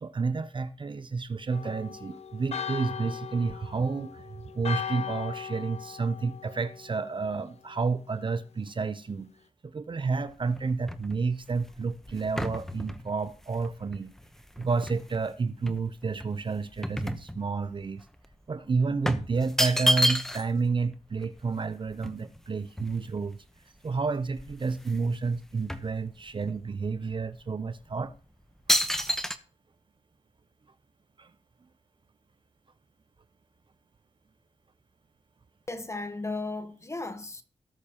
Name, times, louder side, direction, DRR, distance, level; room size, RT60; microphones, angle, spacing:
voice 1, 0.0-4.2 4.5-9.3 9.6-14.1 14.6-18.0 18.5-23.4 23.8-28.1 31.2-31.3, right 4 dB, 40° right, 0.6 m, -30 dB
Church bell, 1.5-7.2, left 8 dB, 60° left, 0.5 m, -38 dB
sound 1, 10.1-15.2 15.7-17.8 18.1-18.3 19.0-20.6 20.9-21.0 21.2-23.4 23.9-24.0 24.3-25.1 25.3-26.6 27.1-27.3 27.9-28.2 28.7-29.4, equal, 5° left, 0.9 m, -31 dB
voice 2, 35.7-37.4, left 2 dB, 25° left, 1.2 m, -35 dB
18.0 x 6.6 x 2.9 m
cardioid pair, 70°, 12 cm